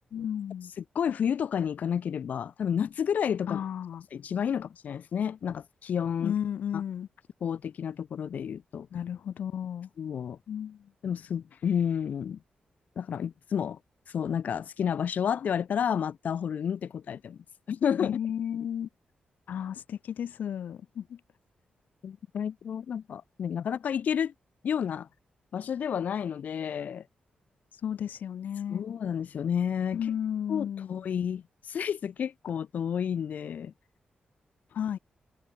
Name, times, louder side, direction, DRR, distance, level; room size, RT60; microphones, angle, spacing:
voice 1, 0.1-0.7 3.5-4.0 6.2-7.1 8.9-9.9 10.5-10.8 18.0-18.9 19.5-21.2 27.8-28.8 29.9-31.0 34.7-35.0, left 9 dB, 85° left, 6.4 m, -33 dB
voice 2, 0.8-3.6 4.1-6.4 6.7-6.8 7.4-8.9 10.0-10.4 11.0-12.4 13.0-13.8 14.1-17.4 17.7-18.2 22.0-24.3 24.6-25.1 25.5-27.0 28.7-30.0 30.5-31.4 31.7-33.7, left 8 dB, 65° left, 3.5 m, -30 dB
wide cardioid pair, 155°, 3 cm